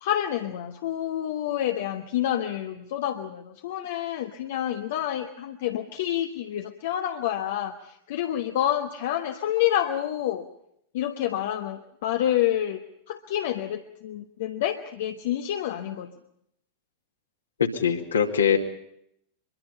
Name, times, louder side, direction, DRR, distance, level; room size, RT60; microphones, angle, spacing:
voice 1, 0.0-10.5 10.9-12.8 13.1-16.1, left 11 dB, 55° left, 5 dB, 1.2 m, -28 dB
voice 2, 17.6-18.6, left 7 dB, 70° left, 4 dB, 2.3 m, -22 dB
24.0 x 23.0 x 5.5 m, 0.75 s
figure-of-eight pair, 90°, 0 cm